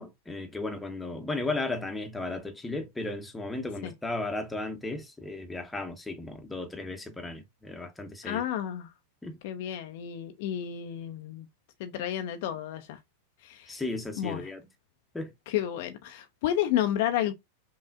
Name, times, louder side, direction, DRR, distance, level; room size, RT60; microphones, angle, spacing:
voice 1, 0.0-8.4 9.2-9.4 13.7-14.6 15.1-15.3, left 2 dB, 5° left, 0.9 m, -35 dB
voice 2, 8.2-8.9 9.4-11.5 11.8-13.0 13.4-13.8 14.2-14.5 15.5-17.3, left 11 dB, 50° left, 0.5 m, -31 dB
5.6 x 2.4 x 2.4 m
figure-of-eight pair, 90°, 0 cm